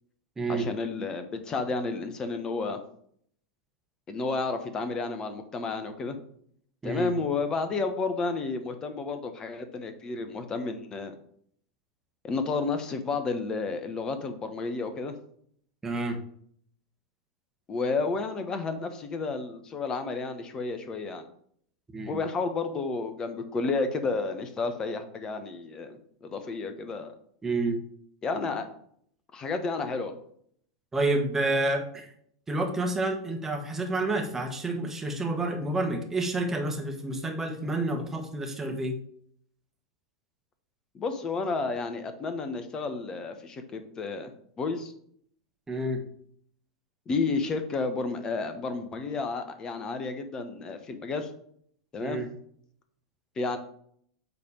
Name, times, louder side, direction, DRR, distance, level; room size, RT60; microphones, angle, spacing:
voice 1, 0.5-2.8 4.1-6.2 6.8-11.1 12.2-15.1 17.7-21.3 22.1-27.1 28.2-28.7 29.3-30.2 40.9-44.3 44.6-44.9 47.1-51.3 51.9-52.2 53.4-53.6, left 4 dB, 25° left, 8 dB, 1.0 m, -31 dB
voice 2, 15.8-16.2 21.9-22.2 27.4-27.8 30.9-32.1 32.5-38.9 45.7-46.0 52.0-52.3, right 2 dB, 15° right, 3 dB, 1.4 m, -29 dB
8.3 x 3.5 x 5.1 m, 0.64 s
figure-of-eight pair, 90°, 3 cm